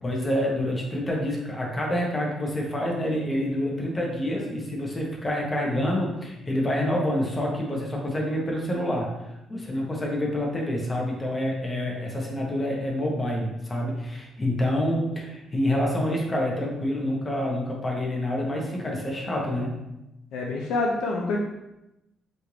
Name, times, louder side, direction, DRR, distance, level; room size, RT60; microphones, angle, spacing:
voice 1, 0.0-9.1 9.5-19.8, left 1 dB, 25° left, -1 dB, 1.0 m, -27 dB
voice 2, 20.3-21.4, left 3 dB, 85° left, -1 dB, 0.5 m, -26 dB
4.3 x 2.5 x 3.2 m, 0.92 s
cardioid pair, 90°, 0 cm